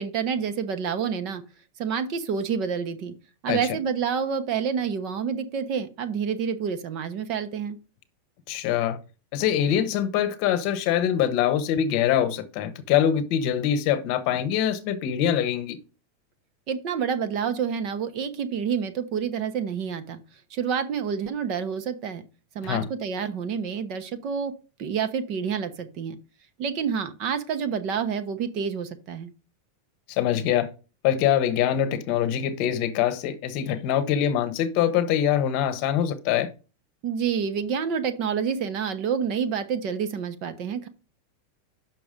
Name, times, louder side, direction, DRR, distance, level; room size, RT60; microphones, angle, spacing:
voice 1, 0.0-1.4 1.8-3.1 3.4-7.8 16.7-20.2 20.5-22.2 22.5-24.5 24.8-26.2 26.6-29.3 37.0-40.9, right 7 dB, 40° right, 1.0 m, -28 dB
voice 2, 8.5-9.0 9.3-15.8 22.6-22.9 30.1-30.7 31.0-36.5, left 10 dB, 45° left, 1.1 m, -24 dB
7.0 x 5.9 x 5.2 m
supercardioid pair, 150°, 0 cm